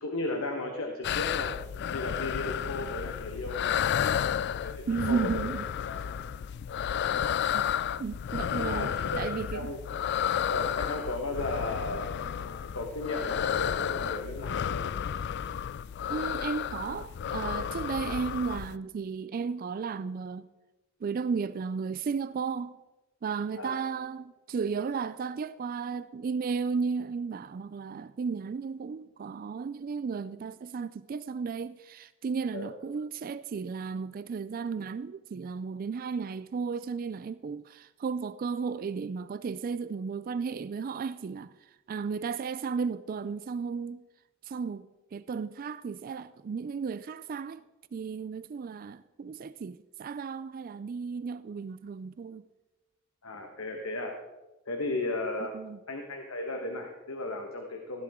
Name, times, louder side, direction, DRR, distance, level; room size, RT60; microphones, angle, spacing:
voice 1, 0.0-1.5 1.9-3.8 4.6-5.3 5.8-6.2 6.8-7.5 8.5-9.8 10.5-14.8 23.6-23.8 32.5-32.7 53.2-54.1 54.7-55.5 55.9-58.0, left 2 dB, 85° left, 1.3 m, -35 dB
sound 1, 1.0-18.8, left 9 dB, 55° left, 0.3 m, -32 dB
voice 2, 4.9-5.7 7.5-7.6 8.0-8.9 9.2-9.7 16.1-20.5 21.0-22.8 23.2-41.5 41.9-44.0 44.5-47.6 47.9-52.4 55.5-55.8, right 5 dB, 45° right, 0.3 m, -34 dB
16.0 x 11.0 x 3.6 m
head